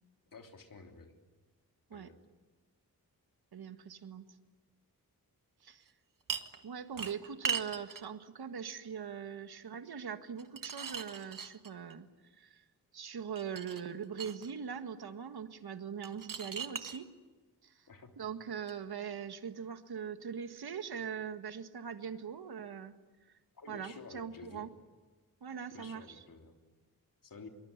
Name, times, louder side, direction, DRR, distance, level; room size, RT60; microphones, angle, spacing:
voice 1, 0.3-1.1 1.9-2.1 17.9-18.1 20.9-21.0 23.5-24.7 25.7-26.5 27.2-27.5, left 4 dB, 60° left, 4 dB, 3.3 m, -51 dB
voice 2, 3.5-4.3 5.6-5.9 6.6-12.1 12.3-12.6 12.9-17.1 17.6-17.8 18.2-22.9 23.7-24.7 25.4-26.2, right 7 dB, 90° right, 9 dB, 1.8 m, -41 dB
sound 1, 6.3-6.6 7.0-8.1 10.4-11.9 13.4-14.5 16.0-17.0 18.6-18.7, right 6 dB, 60° right, 1.6 m, -39 dB
26.0 x 23.0 x 9.8 m, 1.3 s
wide cardioid pair, 175°, 37 cm